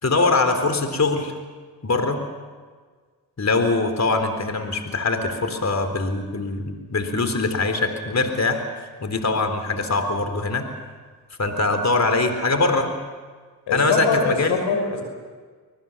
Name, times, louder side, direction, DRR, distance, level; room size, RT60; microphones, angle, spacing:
voice 1, 0.0-1.3 1.8-2.2 3.4-6.6 6.9-8.6 9.0-10.7 11.4-12.9 13.7-14.6, left 3 dB, 40° left, 7 dB, 3.9 m, -22 dB
voice 2, 13.7-15.0, left 4 dB, 85° left, 4 dB, 5.9 m, -23 dB
25.5 x 20.0 x 7.4 m, 1.5 s
supercardioid pair, 55°, 42 cm